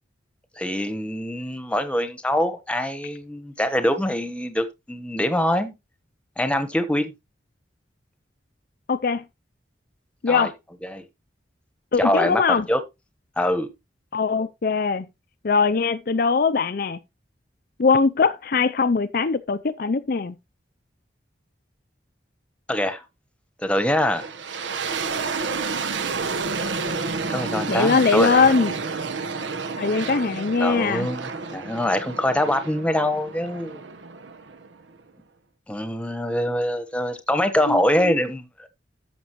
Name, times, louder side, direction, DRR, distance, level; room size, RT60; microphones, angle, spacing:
voice 1, 0.6-5.7 6.4-7.1 10.3-10.5 10.8-11.0 12.0-12.8 13.4-13.7 22.7-23.0 23.6-24.3 27.1-28.5 30.6-33.8 35.7-38.7, left 1 dB, 5° left, 1.1 m, -24 dB
voice 2, 8.9-9.2 10.2-10.5 11.9-12.6 14.1-15.1 15.4-17.0 17.8-20.4 27.7-28.7 29.8-31.1 37.7-38.1, left 5 dB, 50° left, 0.5 m, -21 dB
sound 1, 24.1-35.0, right 4 dB, 80° right, 1.1 m, -30 dB
13.5 x 6.1 x 3.0 m
head